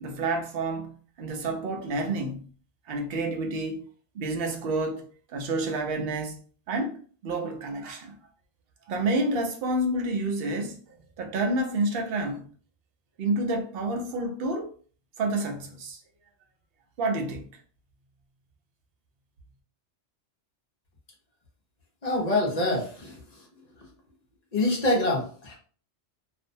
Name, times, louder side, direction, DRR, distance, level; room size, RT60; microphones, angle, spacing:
voice 1, 0.0-2.5 2.9-3.9 4.1-5.0 5.3-6.4 6.7-8.1 8.9-10.8 11.2-12.4 13.2-14.7 15.2-16.0 17.0-17.5, right 2 dB, 65° right, 0.7 m, -29 dB
voice 2, 22.0-23.2 24.5-25.5, left 1 dB, 45° left, 0.7 m, -25 dB
2.5 x 2.1 x 2.6 m
omnidirectional pair, 1.2 m